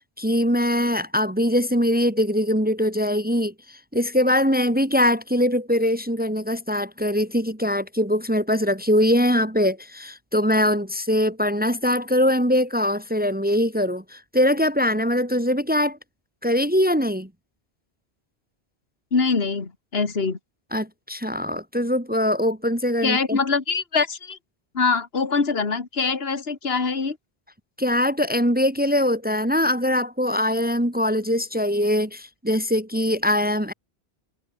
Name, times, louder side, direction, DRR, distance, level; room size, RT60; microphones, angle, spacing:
voice 1, 0.2-16.0 16.4-17.3 20.7-23.4 27.8-33.7, equal, 10° right, 2.0 m, -22 dB
voice 2, 19.1-20.4 23.0-24.4 24.7-27.2, left 4 dB, 60° left, 2.3 m, -23 dB
omnidirectional pair, 1.1 m